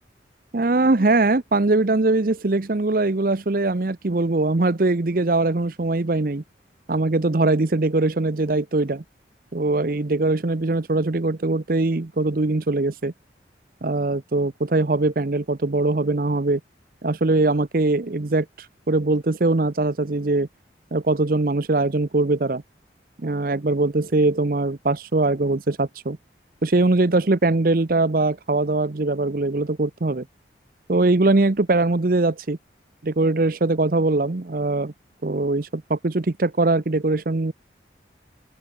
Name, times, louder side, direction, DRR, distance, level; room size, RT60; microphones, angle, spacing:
voice 1, 0.5-6.4 6.9-9.0 9.5-13.1 13.8-16.6 17.0-18.5 18.9-20.5 20.9-22.6 23.2-26.2 26.6-30.2 30.9-32.6 33.0-34.9 35.2-37.5, right 2 dB, 50° right, 0.8 m, -21 dB
open air
head